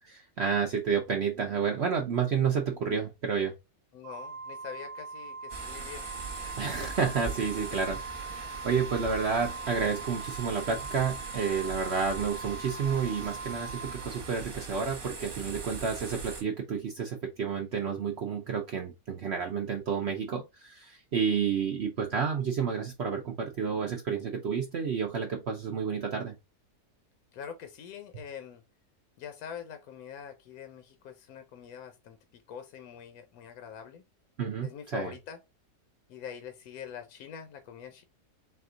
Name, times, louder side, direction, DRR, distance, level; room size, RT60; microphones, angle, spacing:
voice 1, 0.1-3.5 6.6-26.3 34.4-35.1, right 6 dB, 60° right, 0.7 m, -30 dB
voice 2, 3.9-6.1 6.4-6.8 7.5-7.8 27.3-28.6 29.2-32.2 32.5-34.0 34.6-35.4 36.1-38.0, left 8 dB, 70° left, 1.1 m, -44 dB
Organ, 4.0-14.8, right 4 dB, 90° right, 0.5 m, -42 dB
sound 1, 5.5-16.4, right 5 dB, 40° right, 1.2 m, -41 dB
4.3 x 2.3 x 3.6 m
omnidirectional pair, 1.7 m